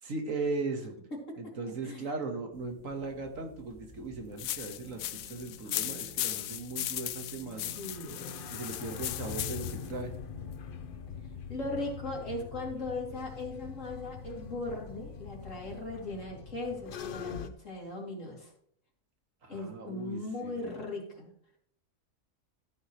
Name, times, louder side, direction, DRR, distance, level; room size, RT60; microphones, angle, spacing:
voice 1, 0.0-0.9 1.4-7.8 8.5-10.1 19.4-20.7, right 3 dB, 70° right, 4 dB, 1.9 m, -38 dB
voice 2, 1.6-2.0 7.8-8.3 11.5-18.5 19.5-21.3, left 2 dB, 65° left, -2 dB, 3.3 m, -38 dB
sound 1, 2.5-16.2, right 4 dB, 5° right, 2.7 m, -55 dB
sound 2, 4.4-9.9, left 13 dB, 85° left, 1.0 m, -37 dB
sound 3, 4.8-17.5, left 7 dB, 50° left, 0.7 m, -44 dB
14.0 x 8.1 x 3.1 m, 0.66 s
omnidirectional pair, 1.4 m